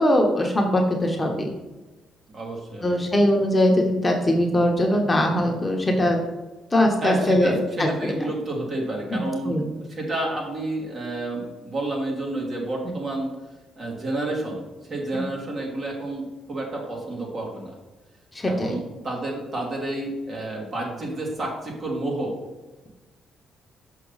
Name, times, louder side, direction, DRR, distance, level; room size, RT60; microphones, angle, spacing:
voice 1, 0.0-1.5 2.8-6.2 6.7-8.1 9.1-9.6 15.1-15.2 18.3-18.7, left 1 dB, 20° left, 1 dB, 1.1 m, -21 dB
voice 2, 2.3-3.1 7.0-13.3 13.8-14.6 14.9-17.7 18.5-22.3, right 2 dB, 45° right, -1 dB, 2.3 m, -30 dB
6.0 x 5.7 x 4.0 m, 1.1 s
cardioid pair, 90°, 0 cm